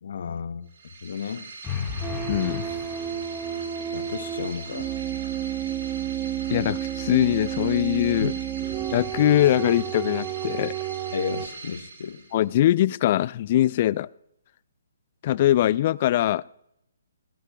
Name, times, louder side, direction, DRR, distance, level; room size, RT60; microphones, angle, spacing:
voice 1, 0.0-0.7 1.0-1.5 3.9-5.0 8.2-8.4 11.1-12.2, left 6 dB, 65° left, 0.8 m, -33 dB
sound 1, 0.7-12.6, right 3 dB, 65° right, 2.9 m, -42 dB
sound 2, 1.6-3.7, left 6 dB, 15° left, 1.7 m, -34 dB
sound 3, 2.0-11.5, right 10 dB, 20° right, 0.5 m, -31 dB
voice 2, 2.3-2.7 6.5-8.3 8.9-10.7 12.3-14.1 15.2-16.4, left 13 dB, 40° left, 0.3 m, -22 dB
17.5 x 13.0 x 2.3 m
hypercardioid pair, 140°, 0 cm